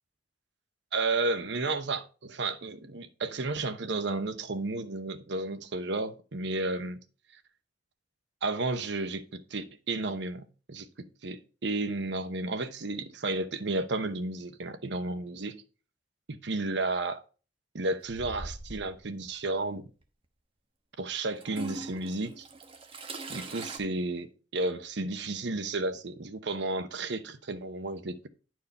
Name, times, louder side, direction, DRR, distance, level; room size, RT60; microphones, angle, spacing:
voice 1, 0.9-7.0 8.4-15.6 16.3-17.2 17.7-19.9 21.0-22.5 23.3-24.3 24.5-28.3, right 2 dB, 70° right, 0.9 m, -32 dB
Toilet flush / Trickle dribble, 18.0-19.0 20.0-20.1 21.4-23.8, right 2 dB, 30° right, 1.1 m, -41 dB
10.5 x 4.7 x 4.1 m
head